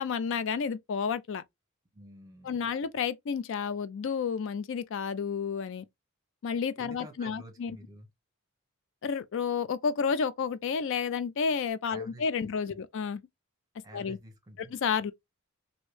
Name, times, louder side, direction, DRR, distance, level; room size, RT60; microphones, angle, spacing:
voice 1, 0.0-1.4 2.4-5.8 6.4-7.7 9.0-13.2 13.9-14.2 14.7-15.1, left 6 dB, 60° left, 0.4 m, -31 dB
voice 2, 1.9-2.6 6.7-8.1 11.9-12.8 13.8-14.7, right 1 dB, 15° right, 0.8 m, -50 dB
3.0 x 2.7 x 3.1 m
head